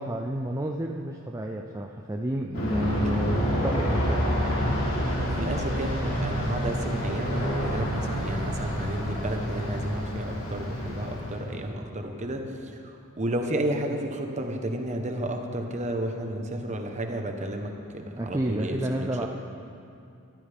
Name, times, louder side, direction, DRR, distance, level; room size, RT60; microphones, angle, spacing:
voice 1, 0.0-4.3 18.1-19.3, right 1 dB, 15° right, 2 dB, 0.5 m, -31 dB
Aircraft, 2.5-11.6, equal, 65° left, 3.4 m, -28 dB
voice 2, 5.0-19.3, right 1 dB, 30° right, 4 dB, 1.2 m, -32 dB
19.0 x 13.5 x 3.6 m, 2.6 s
head